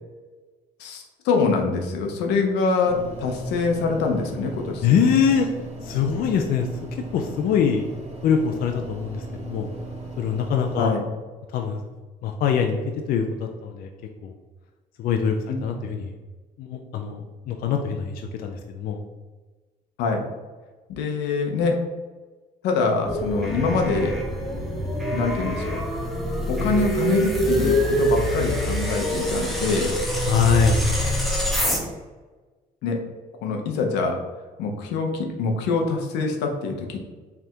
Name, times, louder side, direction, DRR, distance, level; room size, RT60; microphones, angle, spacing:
voice 1, 0.8-5.0 10.7-11.0 15.5-15.6 20.0-20.2 20.9-21.8 22.6-24.2 25.1-25.8 26.5-29.9 32.8-33.0 33.4-34.2 34.6-37.0, left 4 dB, 90° left, 2 dB, 0.7 m, -24 dB
sound 1, 2.8-10.8, right 2 dB, 40° right, 1.2 m, -37 dB
voice 2, 4.8-5.5 5.8-6.7 7.1-7.8 8.2-9.7 10.2-10.9 11.5-11.8 12.2-12.8 13.1-13.9 14.2-14.3 15.0-15.4 15.6-16.1 16.6-19.0 30.2-30.8, left 7 dB, 60° left, 3 dB, 0.4 m, -23 dB
sound 2, 23.0-31.8, equal, ahead, 0.8 m, -25 dB
3.4 x 2.4 x 4.3 m, 1.3 s
cardioid pair, 110°, 17 cm